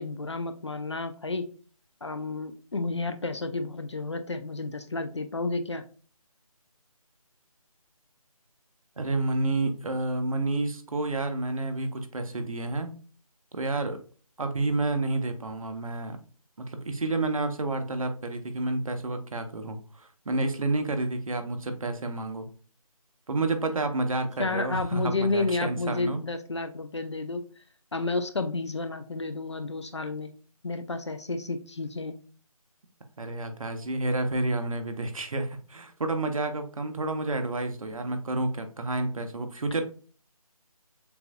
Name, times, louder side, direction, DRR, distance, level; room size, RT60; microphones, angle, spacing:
voice 1, 0.0-1.5 2.0-5.8 24.4-27.4 27.9-30.3 30.6-32.2, left 3 dB, 50° left, 9 dB, 0.4 m, -31 dB
voice 2, 9.0-13.0 13.5-14.0 14.4-16.2 16.6-22.5 23.3-26.2 33.2-39.8, right 2 dB, 65° right, 7 dB, 0.8 m, -30 dB
6.8 x 2.6 x 2.3 m, 0.39 s
figure-of-eight pair, 175°, 19 cm